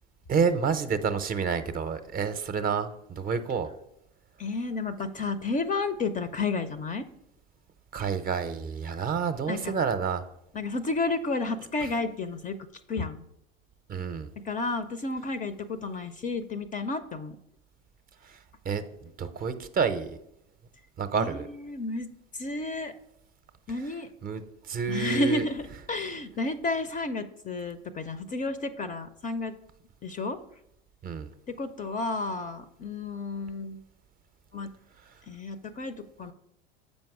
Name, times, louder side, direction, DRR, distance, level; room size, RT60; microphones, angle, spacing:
voice 1, 0.3-3.7 7.9-10.2 13.9-14.3 18.3-18.4 18.7-20.1 21.0-21.5 24.2-24.4 24.7-25.4 31.0-31.3, right 6 dB, 30° right, 9 dB, 0.6 m, -29 dB
voice 2, 4.4-7.0 9.5-9.7 10.5-12.6 12.9-13.2 14.4-17.4 21.2-22.9 23.7-24.1 24.9-29.5 30.0-30.4 31.5-33.8 34.5-34.7 35.3-36.3, left 3 dB, 25° left, 11 dB, 0.5 m, -31 dB
7.5 x 5.3 x 4.8 m, 0.81 s
hypercardioid pair, 80°, 30 cm